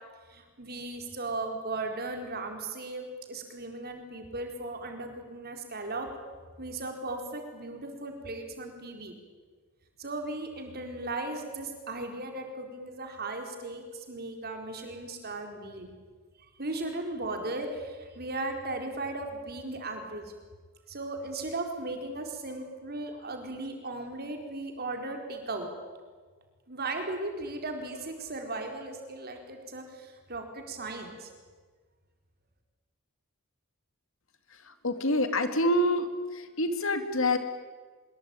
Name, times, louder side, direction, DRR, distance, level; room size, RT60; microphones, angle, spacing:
voice 1, 0.3-6.1 6.6-9.2 10.0-15.9 16.6-20.3 20.9-25.7 26.7-31.3, right 2 dB, 45° right, 4 dB, 4.5 m, -37 dB
voice 2, 34.8-36.1 36.6-37.4, left 1 dB, 60° left, 8 dB, 2.4 m, -26 dB
25.0 x 22.0 x 9.2 m, 1.5 s
head